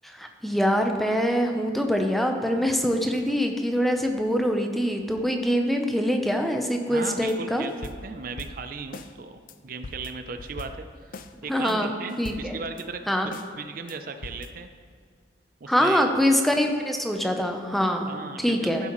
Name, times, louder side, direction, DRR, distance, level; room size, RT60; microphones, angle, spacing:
voice 1, 0.0-7.7 11.5-12.6 13.1-13.3 15.7-18.1 18.4-18.9, equal, ahead, 3 dB, 0.7 m, -24 dB
voice 2, 6.9-7.7 8.0-10.8 11.4-13.0 13.5-14.7 15.6-16.1 18.1-18.9, right 4 dB, 50° right, 8 dB, 0.5 m, -36 dB
sound 1, 7.3-7.4 7.7-9.1 9.5-9.6 9.8-11.3 11.7-11.8 12.1-12.8 13.3-13.5 13.9-14.0 14.2-14.5, left 2 dB, 50° left, 0.4 m, -41 dB
15.0 x 7.6 x 3.1 m, 2.1 s
head